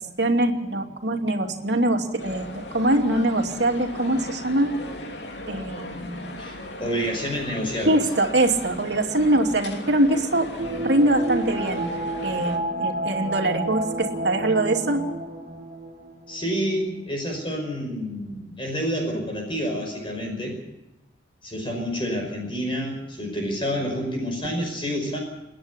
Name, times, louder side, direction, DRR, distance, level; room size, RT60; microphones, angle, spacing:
voice 1, 0.2-4.7 5.5-6.3 7.8-10.5 10.8-11.9 12.2-15.0, right 1 dB, 85° right, 3 dB, 2.7 m, -23 dB
sound 1, 2.2-12.6, left 1 dB, 85° left, 3.0 m, -37 dB
voice 2, 6.4-8.0 16.3-20.6 21.4-25.2, equal, 30° left, 1 dB, 5.5 m, -28 dB
sound 2, 10.6-16.5 16.8-16.9, right 1 dB, 45° right, 2.6 m, -30 dB
28.5 x 10.5 x 9.9 m, 0.98 s
head